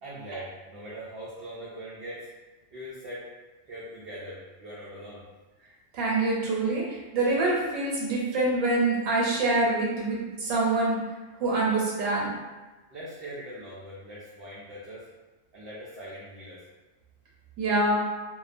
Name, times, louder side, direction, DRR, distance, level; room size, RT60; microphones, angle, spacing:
voice 1, 0.0-2.3 2.7-3.3 3.7-5.2 12.9-15.1 15.5-16.6, right 1 dB, 60° right, -7 dB, 0.7 m, -41 dB
voice 2, 5.9-11.1 11.4-12.3 17.6-18.0, right 2 dB, 90° right, -4 dB, 1.0 m, -25 dB
2.6 x 2.1 x 2.4 m, 1.2 s
omnidirectional pair, 1.3 m